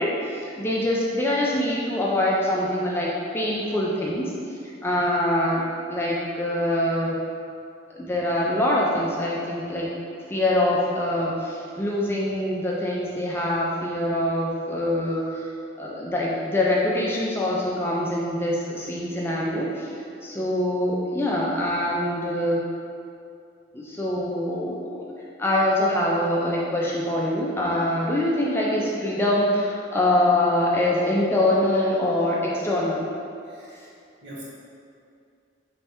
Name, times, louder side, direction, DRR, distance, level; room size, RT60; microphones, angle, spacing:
voice 1, 0.0-4.3 4.8-7.2 7.9-9.9 10.3-15.5 15.8-19.9 20.2-22.6 23.7-25.0 25.4-33.0, left 1 dB, 10° left, -4 dB, 0.4 m, -24 dB
voice 2, 33.5-33.9 34.2-34.4, right 1 dB, 65° right, -6 dB, 1.0 m, -42 dB
3.3 x 3.2 x 4.3 m, 2.5 s
head